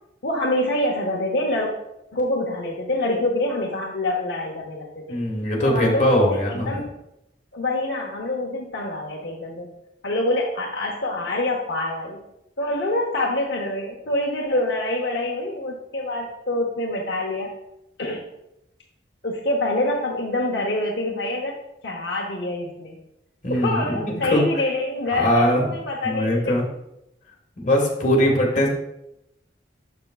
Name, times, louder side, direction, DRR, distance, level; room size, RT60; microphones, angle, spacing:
voice 1, 0.2-1.7 2.1-5.2 5.6-6.9 7.5-9.7 10.0-12.2 12.6-17.5 18.0-18.2 19.2-21.6 21.8-23.0 23.5-26.5 28.2-28.4, left 1 dB, 65° left, -1 dB, 0.9 m, -26 dB
voice 2, 5.1-6.8 23.4-24.4 25.1-25.7 26.0-26.6 27.6-28.7, equal, 40° left, -1 dB, 1.6 m, -21 dB
6.8 x 6.7 x 2.4 m, 0.84 s
head